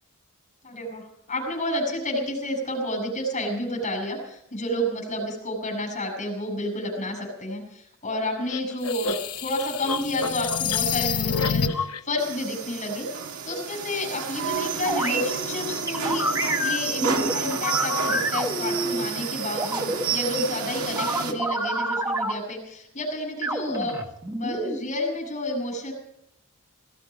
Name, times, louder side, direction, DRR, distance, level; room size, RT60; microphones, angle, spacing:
voice 1, 0.6-13.1 13.4-24.0 24.3-25.9, left 1 dB, 35° left, 1 dB, 7.6 m, -30 dB
sound 1, 8.5-12.0, left 6 dB, 90° left, 1.0 m, -27 dB
sound 2, 12.2-21.3, right 6 dB, 75° right, 1.9 m, -30 dB
sound 3, 14.9-15.2 15.9-19.1 19.6-20.0 21.0-22.3 23.4-24.8, right 1 dB, 15° right, 1.6 m, -27 dB
18.5 x 14.5 x 5.4 m, 0.77 s
head